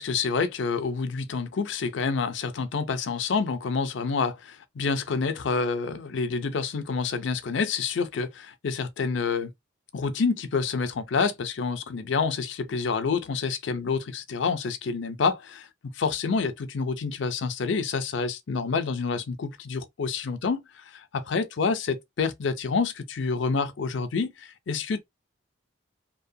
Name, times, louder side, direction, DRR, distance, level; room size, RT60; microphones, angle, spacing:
voice 1, 0.0-9.5 9.9-15.7 15.9-25.0, left 5 dB, 70° left, 0.5 m, -28 dB
2.8 x 2.1 x 2.6 m
head